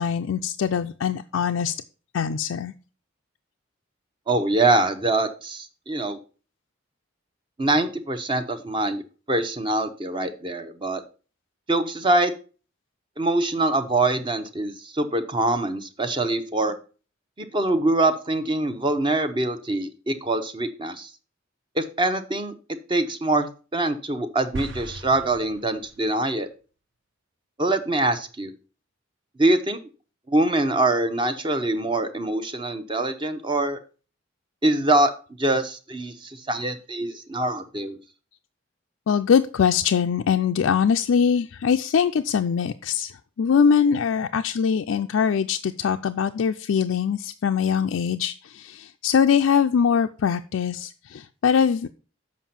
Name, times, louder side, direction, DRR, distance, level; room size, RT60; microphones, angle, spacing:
voice 1, 0.0-1.7 2.1-2.7 39.1-51.9, left 7 dB, 85° left, 6 dB, 0.4 m, -22 dB
voice 2, 4.3-6.2 7.6-9.0 9.3-11.0 11.7-12.3 13.2-16.8 17.4-21.1 21.8-22.5 22.9-23.5 23.7-26.5 27.6-28.5 29.4-29.8 30.3-33.8 34.6-35.1 35.4-38.0, right 2 dB, 25° right, 9 dB, 0.7 m, -24 dB
sound 1, 24.5-26.2, right 2 dB, 65° right, 0.7 m, -38 dB
7.3 x 5.2 x 5.7 m, 0.36 s
head